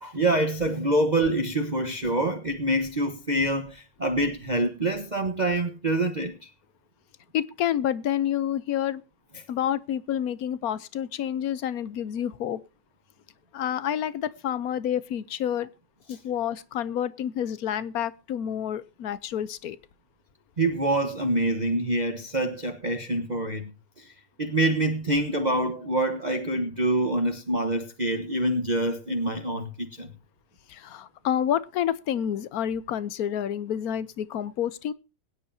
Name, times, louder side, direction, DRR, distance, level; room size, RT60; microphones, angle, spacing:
voice 1, 0.0-6.5 9.3-9.4 16.1-16.2 20.6-23.7 24.0-24.1 24.4-30.1, right 1 dB, 25° right, 1.2 m, -26 dB
voice 2, 7.3-9.0 9.5-12.6 13.5-15.7 16.1-19.8 30.7-34.9, left 10 dB, 60° left, 1.2 m, -29 dB
22.0 x 9.8 x 2.8 m
omnidirectional pair, 1.9 m